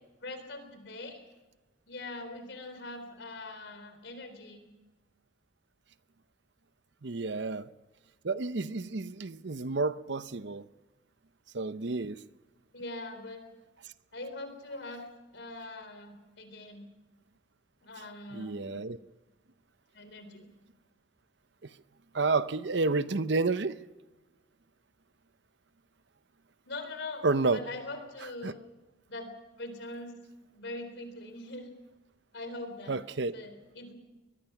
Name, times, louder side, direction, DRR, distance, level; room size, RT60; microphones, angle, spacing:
voice 1, 0.2-1.2 1.9-4.7 12.7-13.4 14.1-15.0 15.3-16.8 17.8-18.9 19.9-20.5 26.7-28.6 29.1-29.3 29.6-30.2 30.5-31.7 32.3-33.0 33.3-33.9, left 2 dB, 65° left, 3.8 m, -42 dB
voice 2, 7.0-7.7 8.2-10.6 11.5-12.2 18.3-19.0 22.1-23.7 27.2-27.6 28.4-28.5 32.9-33.3, right 3 dB, 65° right, 0.8 m, -30 dB
23.0 x 20.0 x 6.0 m
head